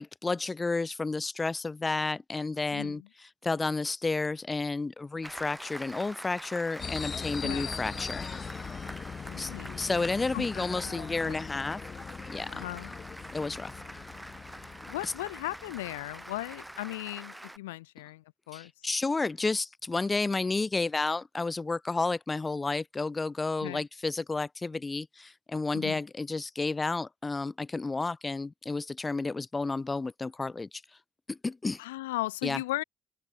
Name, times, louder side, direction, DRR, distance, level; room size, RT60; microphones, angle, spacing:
voice 1, 0.0-8.3 9.4-11.8 12.2-12.6 13.3-13.7 15.0-15.1 18.5-30.8 31.3-31.8 32.4-32.6, left 3 dB, 30° left, 2.6 m, -31 dB
voice 2, 2.7-3.1 7.4-7.7 9.2-10.0 10.3-11.4 12.5-12.9 14.9-18.7 23.6-23.8 25.7-26.0 31.8-32.8, left 18 dB, 85° left, 0.7 m, -37 dB
Applause, 5.2-17.6, right 1 dB, 10° right, 7.1 m, -45 dB
sound 1, 6.8-16.7, left 6 dB, 45° left, 2.1 m, -41 dB
open air
hypercardioid pair, 45°, 0 cm